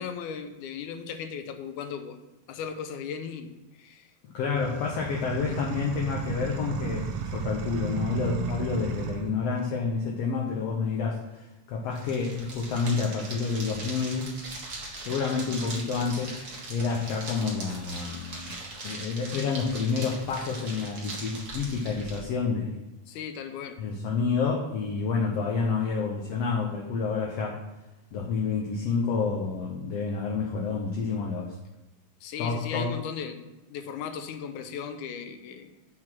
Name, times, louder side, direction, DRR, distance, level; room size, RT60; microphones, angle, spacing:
voice 1, 0.0-2.2 2.5-3.5 3.8-4.1 5.4-5.8 23.1-23.8 32.2-35.7, left 7 dB, 85° left, 7 dB, 2.1 m, -37 dB
voice 2, 4.3-14.3 15.1-16.3 16.7-18.5 18.8-22.8 23.8-27.6 28.1-31.6 32.4-32.9, left 5 dB, 70° left, -1 dB, 1.7 m, -29 dB
sound 1, 4.5-9.3, right 5 dB, 80° right, 1.2 m, -33 dB
sound 2, 11.9-22.2, right 2 dB, 40° right, 1.1 m, -40 dB
7.5 x 3.9 x 6.0 m, 1.0 s
omnidirectional pair, 3.5 m